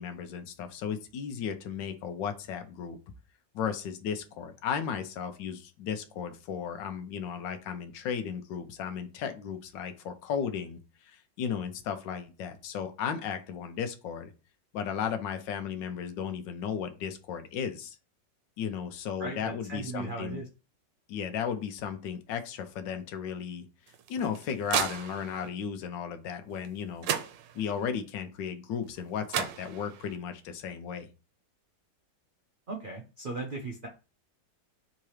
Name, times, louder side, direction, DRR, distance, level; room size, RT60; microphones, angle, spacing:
voice 1, 0.0-3.0 3.5-14.3 14.7-18.0 18.6-20.4 21.1-23.7 24.1-27.1 27.5-31.1, left 7 dB, 80° left, 8 dB, 1.4 m, -35 dB
voice 2, 19.2-20.4 32.7-33.9, right 3 dB, 65° right, 2 dB, 0.5 m, -37 dB
sound 1, 23.9-25.5 26.7-26.8 27.0-27.9 29.0-29.1 29.3-30.2, right 9 dB, 80° right, 1.3 m, -34 dB
3.6 x 2.9 x 4.7 m, 0.32 s
omnidirectional pair, 2.0 m